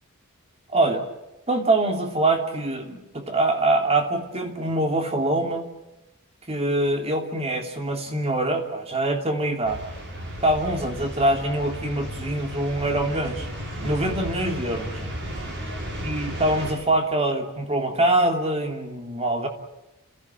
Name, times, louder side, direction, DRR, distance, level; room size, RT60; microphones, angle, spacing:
voice 1, 0.7-1.1 1.5-5.7 6.5-9.8 10.4-13.5 13.8-14.9 16.0-19.5, right 2 dB, 30° right, 4 dB, 3.2 m, -24 dB
sound 1, 9.6-16.7, equal, 55° right, 7.0 m, -34 dB
29.5 x 15.5 x 9.1 m, 1.0 s
head